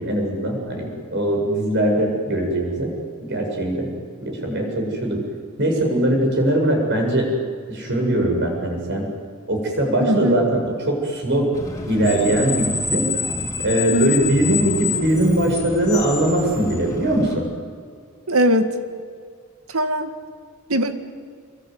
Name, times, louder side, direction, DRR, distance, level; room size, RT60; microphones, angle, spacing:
voice 1, 0.0-2.9 3.2-3.9 4.2-5.2 5.6-7.3 7.7-9.1 9.5-11.6 11.9-13.1 13.6-17.4, right 1 dB, 50° right, 2 dB, 7.7 m, -21 dB
voice 2, 10.0-10.4 13.9-14.1 18.3-18.7 19.7-20.1 20.7-20.9, equal, 75° right, 8 dB, 2.1 m, -20 dB
Screech, 11.5-17.3, left 5 dB, 15° left, 3.9 m, -27 dB
26.5 x 23.0 x 9.6 m, 2.1 s
head